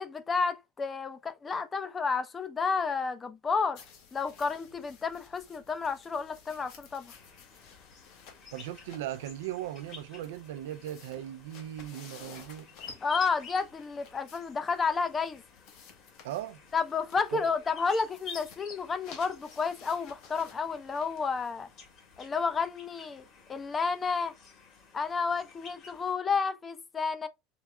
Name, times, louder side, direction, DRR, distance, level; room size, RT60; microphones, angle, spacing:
voice 1, 0.0-3.8 4.1-7.1 13.0-15.4 16.7-21.7 22.2-24.4 24.9-27.3, left 5 dB, 25° left, 0.7 m, -31 dB
sound 1, 3.7-22.7, left 6 dB, 65° left, 1.7 m, -55 dB
sound 2, 7.1-26.1, left 5 dB, 45° left, 1.7 m, -50 dB
voice 2, 8.5-12.7 16.2-16.6 17.3-17.5, right 12 dB, 85° right, 0.5 m, -38 dB
4.6 x 3.5 x 2.2 m
supercardioid pair, 110°, 0 cm